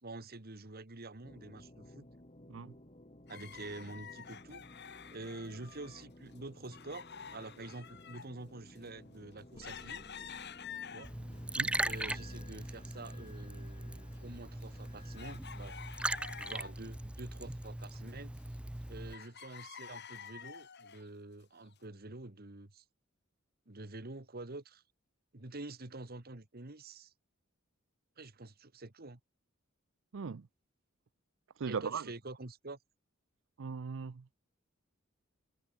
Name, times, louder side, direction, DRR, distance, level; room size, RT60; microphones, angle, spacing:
voice 1, 0.0-2.1 3.3-4.6 5.1-10.0 10.9-11.1 11.8-15.8 16.4-18.3 18.9-22.8 23.7-24.8 25.3-27.1 28.2-29.2 31.7-32.8, right 2 dB, 50° right, 1.8 m, -47 dB
sound 1, 1.2-15.4, left 1 dB, 30° left, 4.5 m, -56 dB
sound 2, 3.3-6.1 6.3-11.4 11.9-12.8 13.0-13.1 13.7-16.9 17.3-18.8 19.1-21.1 21.7-21.8, left 7 dB, 55° left, 3.3 m, -49 dB
Liquid, 11.0-19.1, right 1 dB, 5° right, 0.4 m, -40 dB
voice 2, 30.1-30.5 31.6-32.0 33.6-34.2, right 5 dB, 65° right, 0.5 m, -38 dB
head